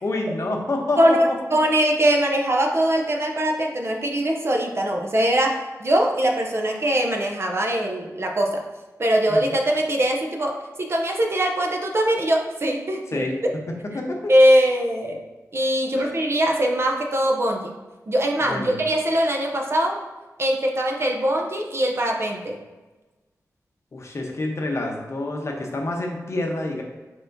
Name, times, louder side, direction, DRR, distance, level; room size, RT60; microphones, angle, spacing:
voice 1, 0.0-1.2 1.5-1.6 9.3-9.6 13.1-13.3 13.9-14.3 15.9-16.2 18.4-18.8 23.9-26.8, left 2 dB, 50° left, 1 dB, 0.8 m, -28 dB
voice 2, 1.0-8.6 9.0-13.3 14.3-15.2 15.5-17.7 18.1-20.0 20.4-22.6, right 1 dB, 45° right, 1 dB, 0.5 m, -21 dB
4.5 x 4.3 x 2.6 m, 1.2 s
wide cardioid pair, 90°, 6 cm